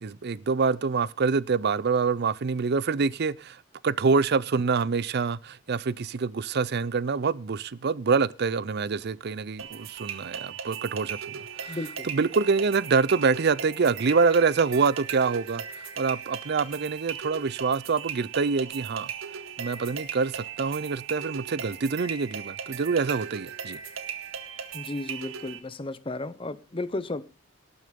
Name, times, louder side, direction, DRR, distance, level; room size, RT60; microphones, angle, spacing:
voice 1, 0.0-3.6 3.8-11.2 11.6-11.8 12.0-15.6 16.0-19.1 19.6-23.8, right 4 dB, 50° right, 0.5 m, -26 dB
sound 1, 9.6-25.6, right 7 dB, 70° right, 2.0 m, -38 dB
voice 2, 11.7-12.1 24.7-27.2, left 2 dB, 25° left, 0.7 m, -34 dB
19.0 x 6.5 x 5.2 m
head